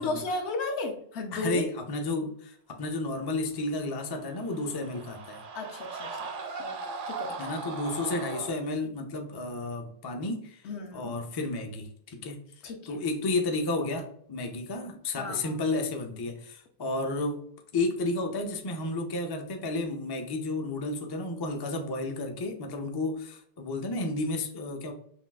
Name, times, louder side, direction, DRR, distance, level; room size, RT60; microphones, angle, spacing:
voice 1, 0.0-1.7 5.5-6.2 6.6-6.8 7.1-7.4 10.6-11.2 12.6-13.0 15.2-15.6, left 3 dB, 75° left, 4 dB, 1.0 m, -34 dB
voice 2, 1.3-5.4 7.4-10.6 10.9-12.4 12.9-17.4 17.7-24.9, left 2 dB, 40° left, 3 dB, 0.3 m, -32 dB
sound 1, 4.1-8.5, right 4 dB, 60° right, 0.6 m, -38 dB
5.6 x 2.3 x 2.3 m, 0.64 s
omnidirectional pair, 1.2 m